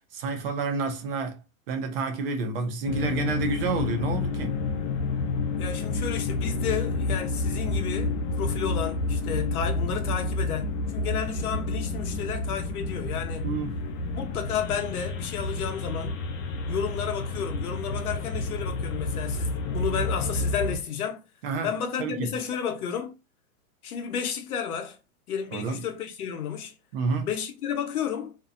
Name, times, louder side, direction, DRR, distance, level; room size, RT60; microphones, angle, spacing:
voice 1, 0.1-1.4 1.7-4.6 13.4-13.8 21.4-21.7 22.0-22.3 25.5-25.8 26.9-27.3, right 4 dB, 40° right, 0.5 m, -29 dB
sound 1, 2.9-20.8, left 3 dB, 55° left, 0.7 m, -29 dB
voice 2, 5.6-13.5 14.1-16.2 16.7-21.2 21.6-23.2 23.8-25.0 25.3-26.7 27.2-28.4, left 7 dB, 90° left, 0.9 m, -32 dB
2.7 x 2.1 x 2.4 m
hypercardioid pair, 150°, 43 cm